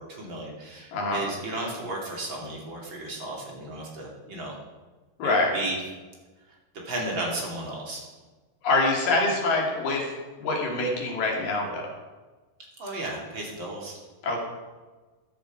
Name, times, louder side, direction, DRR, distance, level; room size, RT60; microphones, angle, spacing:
voice 1, 0.0-4.5 5.2-5.8 6.7-8.1 12.8-13.9, right 1 dB, 35° right, -2 dB, 3.2 m, -34 dB
voice 2, 0.9-1.2 5.2-5.5 8.6-10.0 10.4-11.9 14.2-14.4, left 2 dB, 70° left, -1 dB, 4.2 m, -25 dB
15.0 x 10.5 x 4.9 m, 1.3 s
omnidirectional pair, 4.2 m